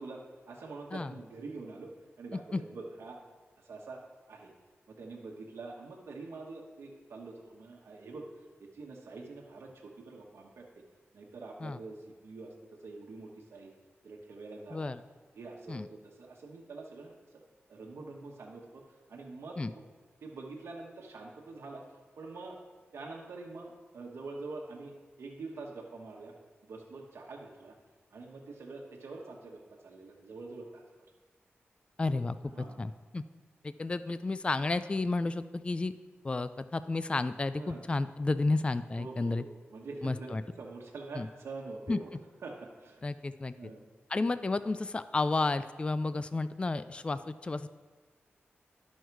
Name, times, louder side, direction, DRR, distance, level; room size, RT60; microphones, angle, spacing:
voice 1, 0.0-1.9 2.2-3.2 3.6-4.0 4.3-4.5 5.0-8.3 8.6-10.6 11.1-12.0 12.2-12.5 12.8-13.7 14.0-15.0 15.3-17.1 17.7-18.8 19.1-19.6 20.2-21.8 22.2-22.5 22.9-26.3 26.7-27.7 28.1-30.8 32.5-32.8 37.5-37.8 39.0-39.5 39.7-42.1 42.4-43.0 43.6-43.8, right 3 dB, 85° right, -1 dB, 1.1 m, -45 dB
voice 2, 32.0-32.4 32.8-33.2 33.6-35.9 36.2-39.4 40.0-40.4 41.2-41.3 41.9-42.0 43.0-43.7 44.1-47.7, left 3 dB, 25° left, 13 dB, 0.3 m, -32 dB
11.0 x 6.3 x 4.6 m, 1.4 s
wide cardioid pair, 90°, 4 cm